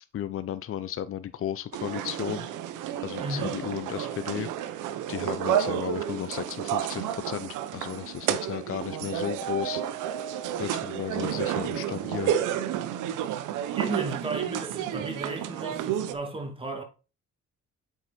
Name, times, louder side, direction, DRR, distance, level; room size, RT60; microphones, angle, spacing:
voice 1, 0.1-2.5 3.0-4.5 4.7-10.2 10.6-12.3, left 10 dB, 45° left, 0.6 m, -34 dB
sound 1, 1.7-16.1, right 10 dB, 90° right, 0.8 m, -31 dB
voice 2, 3.2-3.6 13.7-16.8, right 2 dB, 20° right, 2.3 m, -34 dB
7.8 x 4.7 x 4.2 m
cardioid pair, 90°, 30 cm